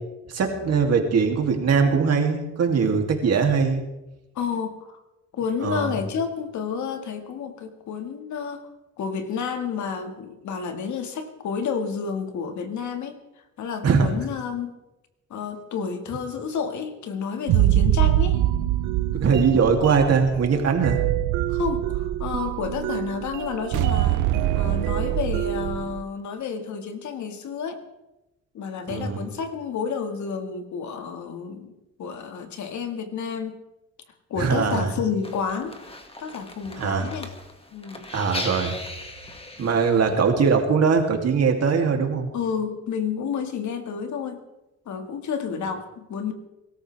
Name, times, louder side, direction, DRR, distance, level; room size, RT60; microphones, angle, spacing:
voice 1, 0.3-3.8 5.6-5.9 13.8-14.1 19.2-21.0 28.9-29.2 34.4-35.0 36.8-37.1 38.1-38.8 39.6-42.3, right 5 dB, 55° right, 2 dB, 2.8 m, -21 dB
voice 2, 4.4-5.0 5.3-8.7 9.0-13.2 13.6-14.7 15.3-18.4 21.5-27.8 28.5-33.6 34.3-35.8 36.2-37.3 37.7-38.1 40.0-40.2 42.3-44.4 44.9-46.3, left 6 dB, 70° left, 7 dB, 1.9 m, -30 dB
sound 1, 17.5-26.0, right 13 dB, 85° right, 0.7 m, -24 dB
sound 2, 35.2-40.3, left 2 dB, 20° left, 2.0 m, -38 dB
23.0 x 13.5 x 3.4 m, 0.98 s
cardioid pair, 90°, 30 cm